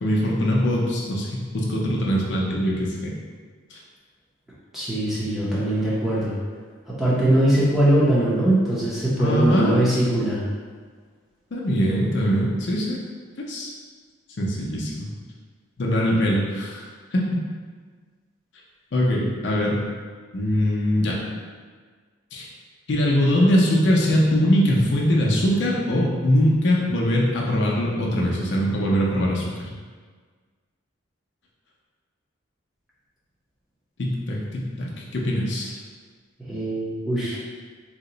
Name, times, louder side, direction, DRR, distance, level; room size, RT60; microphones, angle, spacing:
voice 1, 0.0-3.1 3.7-3.8 9.2-9.8 11.5-12.9 13.5-13.7 14.4-15.1 15.8-17.2 18.9-19.8 20.3-21.2 22.3-22.5 22.9-29.7 34.0-35.8, equal, 55° left, -3 dB, 0.5 m, -22 dB
voice 2, 4.7-6.3 6.9-10.4 36.4-37.4, right 1 dB, ahead, -9 dB, 0.6 m, -21 dB
2.8 x 2.1 x 3.8 m, 1.5 s
head